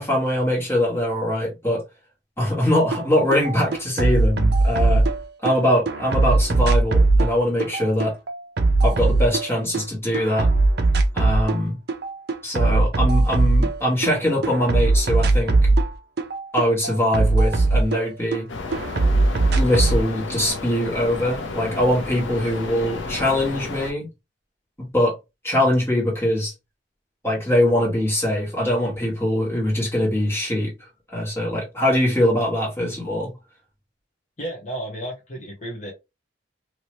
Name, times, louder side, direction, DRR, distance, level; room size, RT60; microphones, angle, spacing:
voice 1, 0.0-1.8 2.4-5.0 5.4-8.1 8.8-10.5 11.1-11.8 12.4-15.7 16.5-18.4 19.6-24.1 24.9-25.1 25.4-26.5 27.2-30.7 31.1-33.3, left 1 dB, 10° left, 1.6 m, -22 dB
sound 1, 2.9-3.0 3.3-5.5 5.9-9.8 10.1-11.6 11.9-14.1 14.4-18.4 18.7-20.0, right 2 dB, 55° right, 0.5 m, -19 dB
sound 2, 18.5-23.9, left 3 dB, 75° left, 0.8 m, -32 dB
voice 2, 34.4-35.9, right 1 dB, 40° left, 0.9 m, -32 dB
2.9 x 2.8 x 3.1 m
head